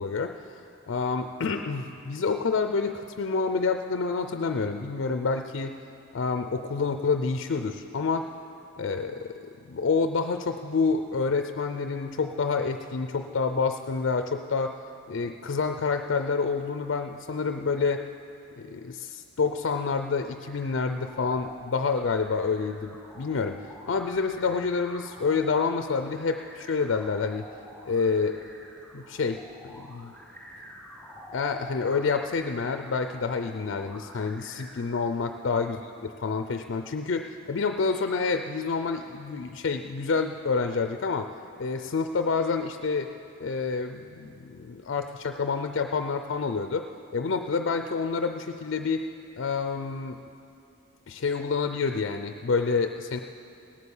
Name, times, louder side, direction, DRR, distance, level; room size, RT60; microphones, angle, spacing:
voice 1, 0.0-5.7 6.1-8.3 8.8-14.8 15.1-18.1 18.6-27.5 27.9-28.4 28.9-30.1 31.3-41.3 41.6-43.1 43.4-49.1 49.4-50.2 51.1-53.2, left 4 dB, 60° left, 7 dB, 0.4 m, -28 dB
sound 1, 20.5-34.8, equal, 5° left, 4.1 m, -48 dB
17.5 x 8.3 x 7.1 m, 2.7 s
head